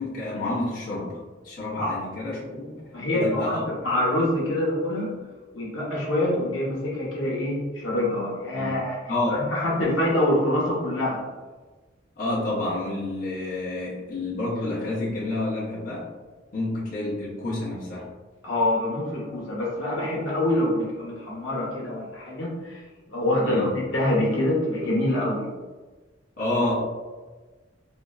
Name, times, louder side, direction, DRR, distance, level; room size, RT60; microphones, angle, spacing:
voice 1, 0.0-2.8 3.1-3.7 8.5-8.8 9.1-9.5 12.2-16.1 16.5-18.1 23.4-23.7 26.4-26.7, left 2 dB, 45° left, -7 dB, 0.6 m, -29 dB
voice 2, 2.9-5.1 5.5-9.0 9.3-11.3 18.4-22.8 23.1-25.5, left 1 dB, 85° left, -5 dB, 0.9 m, -25 dB
3.0 x 2.4 x 2.3 m, 1.3 s
head